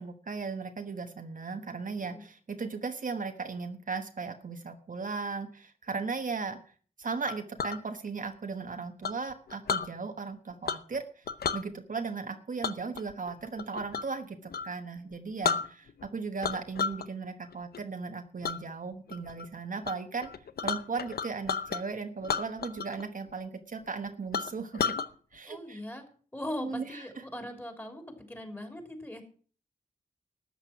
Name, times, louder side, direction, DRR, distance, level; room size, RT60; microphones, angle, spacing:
voice 1, 0.0-6.6 7.0-11.2 11.5-20.3 20.6-25.0 25.3-25.8 26.6-27.0, right 4 dB, 60° right, 6 dB, 1.2 m, -37 dB
Chink clink, 7.3-7.8 9.0-9.9 10.7-11.0 11.3-11.6 12.6-14.2 14.5-14.7 15.1-15.2 15.4-16.1 16.4-17.1 17.4-17.8 18.4-18.6 19.1-19.5 19.8-20.0 20.2-21.8 22.2-23.0 23.3-23.4 23.9-24.0 24.3-25.1, left 6 dB, 85° left, 0.7 m, -32 dB
voice 2, 25.5-26.0 26.3-29.2, left 1 dB, 15° left, 4 dB, 3.3 m, -40 dB
13.5 x 8.9 x 5.8 m, 0.42 s
wide cardioid pair, 100°, 16 cm